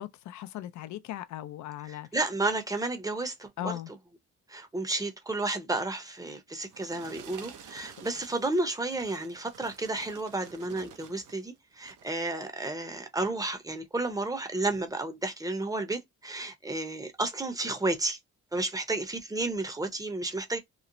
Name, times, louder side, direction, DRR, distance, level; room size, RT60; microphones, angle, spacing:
voice 1, 0.0-2.1 3.6-3.9, left 12 dB, 70° left, 0.5 m, -38 dB
voice 2, 2.1-3.8 4.5-18.2 18.5-20.6, right 2 dB, 10° right, 0.7 m, -32 dB
sound 1, 6.3-11.4 11.8-12.2 12.8-12.9, right 7 dB, 75° right, 0.7 m, -50 dB
3.0 x 2.0 x 2.5 m
cardioid pair, 90°, 30 cm